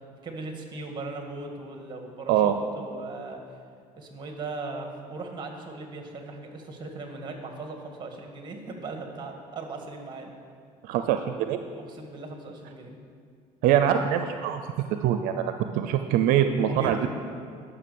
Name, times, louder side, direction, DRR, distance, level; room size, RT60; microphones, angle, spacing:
voice 1, 0.2-3.4 4.0-10.3 11.9-13.0 16.6-17.1, right 3 dB, 30° right, 3 dB, 1.9 m, -38 dB
voice 2, 10.8-11.6 13.6-14.6 15.0-17.0, right 10 dB, 80° right, 8 dB, 0.5 m, -23 dB
11.0 x 6.2 x 6.9 m, 2.2 s
cardioid pair, 100°, 15 cm